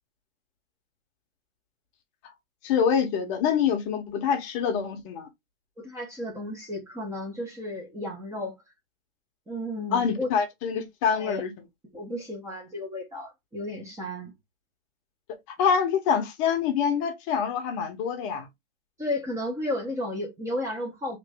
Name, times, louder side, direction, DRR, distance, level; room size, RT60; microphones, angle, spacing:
voice 1, 2.6-5.3 9.9-11.5 15.6-18.5, left 7 dB, 30° left, 0.8 m, -25 dB
voice 2, 5.8-8.5 9.5-10.3 11.1-11.4 11.9-14.3 19.0-21.2, left 1 dB, 10° right, 0.7 m, -33 dB
2.9 x 2.7 x 3.3 m
hypercardioid pair, 145°, 34 cm